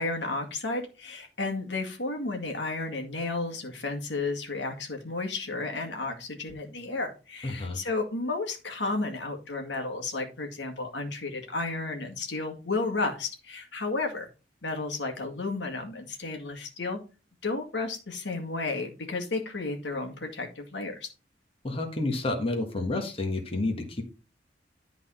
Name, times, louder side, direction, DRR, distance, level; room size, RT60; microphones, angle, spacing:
voice 1, 0.0-14.3 14.6-17.0 17.4-21.1, left 3 dB, 70° left, 3 dB, 1.9 m, -32 dB
voice 2, 7.4-7.8 21.6-24.0, left 2 dB, 30° left, 3 dB, 1.6 m, -30 dB
11.0 x 4.0 x 5.5 m, 0.32 s
head